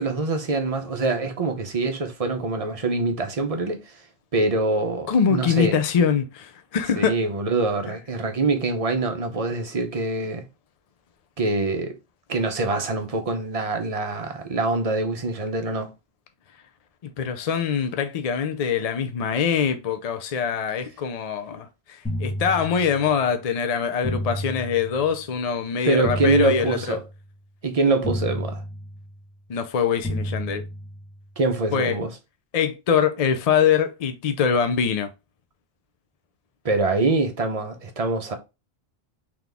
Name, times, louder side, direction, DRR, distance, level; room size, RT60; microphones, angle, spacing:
voice 1, 0.0-4.0 4.3-5.8 7.0-10.5 11.4-12.0 12.3-15.9 25.9-27.0 27.6-28.6 31.4-32.1 36.6-38.3, right 3 dB, 40° right, 0.8 m, -24 dB
voice 2, 5.1-7.2 17.0-27.0 29.5-30.6 31.7-32.0 32.5-35.1, left 7 dB, 50° left, 0.5 m, -23 dB
sound 1, 22.0-23.2 24.0-25.2 26.0-27.2 28.0-29.2 30.0-31.2, equal, 10° left, 1.1 m, -31 dB
3.9 x 3.0 x 3.4 m
omnidirectional pair, 1.0 m